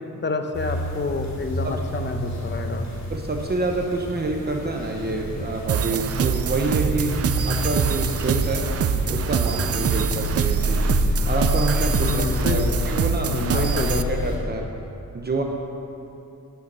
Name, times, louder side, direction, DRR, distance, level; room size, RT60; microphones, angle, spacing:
voice 1, 0.2-2.9 12.0-12.9 13.3-14.2, left 3 dB, 30° left, 5 dB, 0.8 m, -28 dB
sound 1, 0.5-14.4, equal, 55° left, 2.7 m, -28 dB
voice 2, 3.1-7.1 7.4-8.7 9.1-10.9 11.3-14.7 15.1-15.4, right 3 dB, 30° right, 1 dB, 0.9 m, -27 dB
sound 2, 5.7-14.0, right 8 dB, 45° right, 0.4 m, -25 dB
13.5 x 9.4 x 5.5 m, 2.7 s
wide cardioid pair, 175°, 34 cm